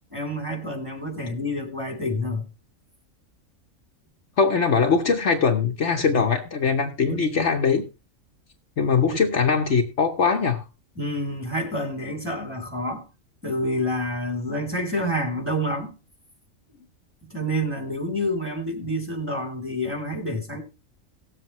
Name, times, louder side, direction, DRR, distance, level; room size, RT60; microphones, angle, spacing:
voice 1, 0.1-2.5 6.1-6.3 7.1-7.2 9.1-9.2 11.0-13.0 13.4-15.9 17.3-20.6, equal, 10° right, 2.8 m, -28 dB
voice 2, 4.4-7.8 8.8-10.6, left 5 dB, 60° left, 1.3 m, -21 dB
18.0 x 7.6 x 3.0 m
omnidirectional pair, 1.4 m